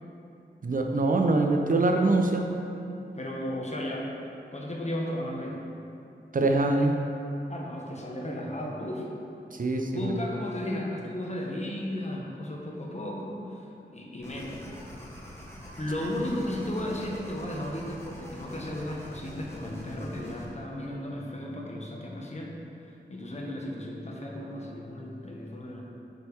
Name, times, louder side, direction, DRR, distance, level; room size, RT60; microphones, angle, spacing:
voice 1, 0.6-2.5 6.3-7.0 9.5-10.1, right 2 dB, 45° right, 3 dB, 0.6 m, -24 dB
voice 2, 3.1-4.1 4.5-5.6 7.5-9.1 9.9-13.7 13.9-14.7 15.8-22.5 22.9-25.8, left 1 dB, 35° left, -2 dB, 1.2 m, -34 dB
sound 1, 14.2-20.5, left 1 dB, 15° left, 1.5 m, -45 dB
8.6 x 4.5 x 3.5 m, 2.8 s
cardioid pair, 50°, 19 cm